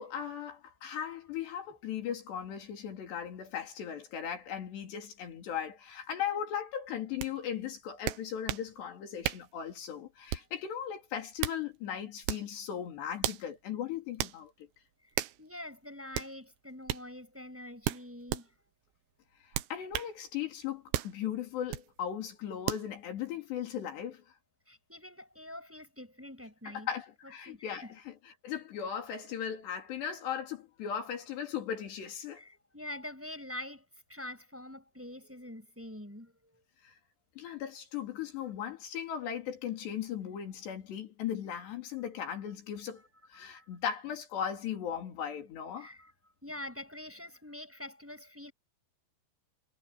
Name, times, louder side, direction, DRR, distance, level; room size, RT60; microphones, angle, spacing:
voice 1, 0.0-14.5 19.7-24.2 26.7-32.4 36.8-36.9 37.4-43.0 43.3-45.9, left 9 dB, 75° left, 5.2 m, -37 dB
sound 1, 7.2-7.3 8.1-8.7 9.2-9.5 10.3-10.6 11.2-11.6 12.2-12.5 13.2-13.5 14.2-14.4 15.2-15.4 16.1-16.3 16.9-17.1 17.8-18.5 19.5-20.1 20.9-21.2 21.7-21.9 22.7-22.9, right 14 dB, 85° right, 3.3 m, -34 dB
voice 2, 15.4-18.5 24.7-26.9 27.5-27.9 32.7-33.8 34.1-36.3 43.4-43.7 45.8-46.1 46.4-48.5, left 1 dB, 5° right, 7.0 m, -45 dB
omnidirectional pair, 4.9 m